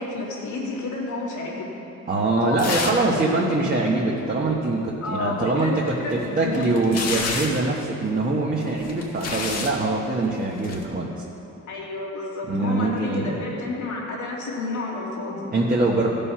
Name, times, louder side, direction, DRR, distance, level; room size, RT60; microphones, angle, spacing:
voice 1, 0.0-1.7 2.4-3.5 5.0-7.0 11.7-15.5, left 2 dB, 75° left, -3 dB, 2.5 m, -30 dB
voice 2, 2.1-5.7 6.1-11.1 12.4-13.4 15.5-16.1, right 2 dB, 30° right, -4 dB, 1.4 m, -23 dB
sound 1, 2.6-3.1 3.4-3.5 5.9-7.7 8.6-9.8 10.6-10.8, left 4 dB, 55° left, 1.6 m, -30 dB
15.5 x 5.5 x 5.7 m, 2.9 s
cardioid pair, 90°, 30 cm